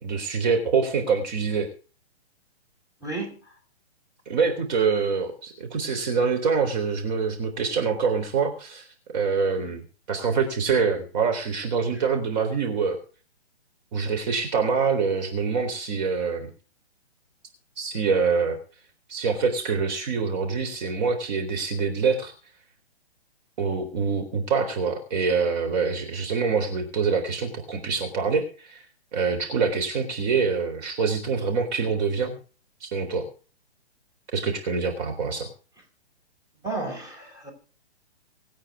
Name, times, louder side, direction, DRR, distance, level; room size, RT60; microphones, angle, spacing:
voice 1, 0.0-1.7 4.3-8.9 9.1-9.8 10.1-13.0 13.9-16.5 17.8-18.6 19.1-22.3 23.6-28.8 29.1-32.4 32.8-33.3 34.3-35.5, right 5 dB, 40° right, 3.8 m, -25 dB
voice 2, 3.0-3.6 11.9-12.0 36.6-37.5, right 3 dB, 10° right, 5.5 m, -33 dB
26.5 x 9.1 x 3.7 m
hypercardioid pair, 135°, 34 cm